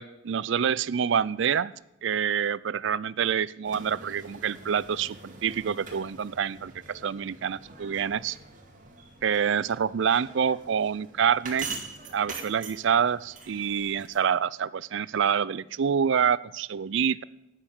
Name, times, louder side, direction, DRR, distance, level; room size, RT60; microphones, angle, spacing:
voice 1, 0.0-1.7 2.0-8.4 9.2-11.7 12.1-17.2, right 7 dB, 65° right, 21 dB, 0.4 m, -27 dB
sound 1, 3.6-14.2, right 4 dB, 40° right, 2.4 m, -44 dB
13.0 x 9.9 x 7.3 m, 0.88 s
head